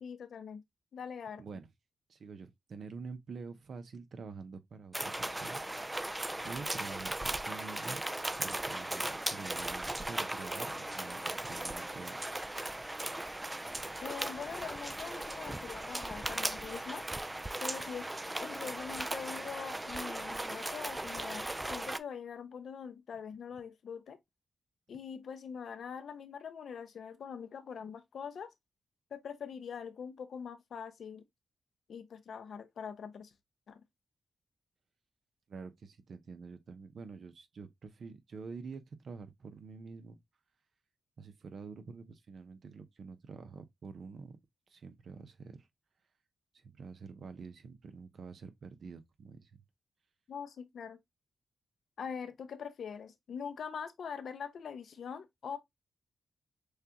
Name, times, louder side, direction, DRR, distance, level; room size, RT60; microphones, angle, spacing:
voice 1, 0.0-0.6 0.9-1.4 14.0-17.0 17.6-18.1 18.4-24.2 24.9-28.5 29.1-31.2 31.9-33.3 33.7-33.8 50.3-51.0 52.0-55.6, left 7 dB, 75° left, 0.7 m, -43 dB
voice 2, 1.4-1.7 2.1-5.6 6.4-8.0 8.4-12.3 35.5-40.2 41.2-44.4 44.7-45.7 46.5-49.5, right 5 dB, 70° right, 0.8 m, -47 dB
sound 1, 4.9-22.0, right 1 dB, 15° right, 0.4 m, -38 dB
6.4 x 2.4 x 2.8 m
cardioid pair, 75°, 0 cm